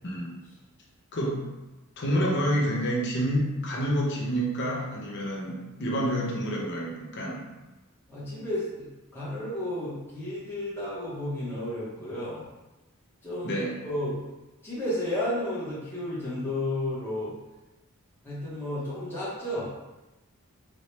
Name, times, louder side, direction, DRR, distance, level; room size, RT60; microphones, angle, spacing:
voice 1, 0.0-0.4 1.1-1.4 2.0-7.4 13.4-13.7, equal, 55° left, -3 dB, 0.8 m, -28 dB
voice 2, 8.1-8.9 9.1-12.4 13.2-14.2 14.6-17.3 18.2-19.7, left 1 dB, 10° left, -10 dB, 0.8 m, -32 dB
4.2 x 2.1 x 3.2 m, 1.1 s
head